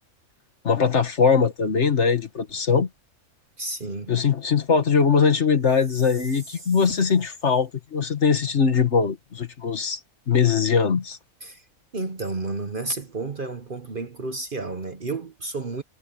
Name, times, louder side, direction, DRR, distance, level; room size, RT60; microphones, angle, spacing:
voice 1, 0.6-2.9 4.1-10.0 10.3-11.2, left 6 dB, 50° left, 1.7 m, -21 dB
voice 2, 3.6-4.2 11.4-11.6 11.9-15.8, right 3 dB, 40° right, 1.1 m, -31 dB
Chime, 5.6-7.6, right 3 dB, 65° right, 3.4 m, -47 dB
omnidirectional pair, 1.5 m